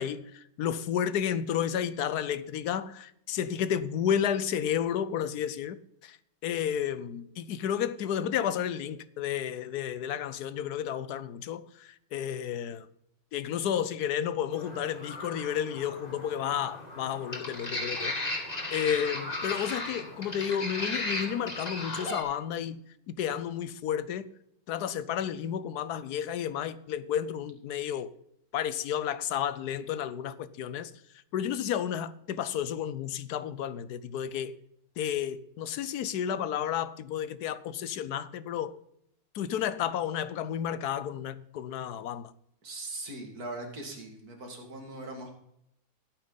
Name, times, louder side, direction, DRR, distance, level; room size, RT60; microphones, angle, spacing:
voice 1, 0.0-5.8 6.0-6.2 6.4-12.9 13.3-24.3 24.7-28.1 28.5-30.9 31.3-34.5 35.0-38.8 39.3-42.3, left 9 dB, 80° left, 1.3 m, -32 dB
sound 1, 14.5-22.2, left 2 dB, 25° left, 2.1 m, -36 dB
voice 2, 42.6-45.3, right 2 dB, 75° right, 2.8 m, -40 dB
16.5 x 8.9 x 4.0 m
omnidirectional pair, 1.6 m